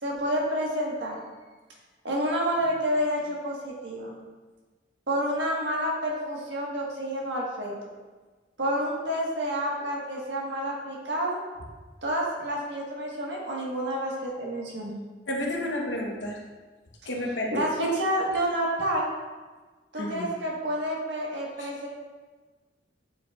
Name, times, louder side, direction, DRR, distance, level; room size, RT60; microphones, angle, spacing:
voice 1, 0.0-1.2 2.0-4.1 5.1-7.7 8.6-11.4 12.0-14.9 17.0-17.1 17.5-19.1 19.9-21.9, equal, 65° right, -3 dB, 1.5 m, -29 dB
voice 2, 15.3-16.4 17.1-17.7 20.0-20.3 21.6-21.7, left 1 dB, 70° left, 0 dB, 1.0 m, -31 dB
8.9 x 4.7 x 2.4 m, 1.3 s
head